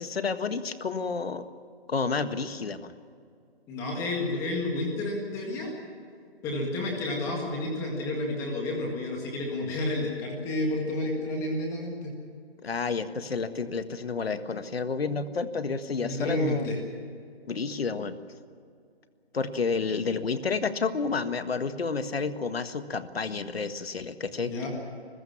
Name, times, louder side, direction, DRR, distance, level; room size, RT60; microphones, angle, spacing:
voice 1, 0.0-1.5 1.9-2.9 12.6-16.7 17.5-18.2 19.3-24.5, left 4 dB, 70° left, 10 dB, 1.7 m, -30 dB
voice 2, 3.7-5.7 6.4-12.1 16.0-16.8 24.4-24.7, left 2 dB, 10° left, 0 dB, 1.8 m, -30 dB
28.0 x 15.5 x 7.3 m, 2.4 s
hypercardioid pair, 165°, 31 cm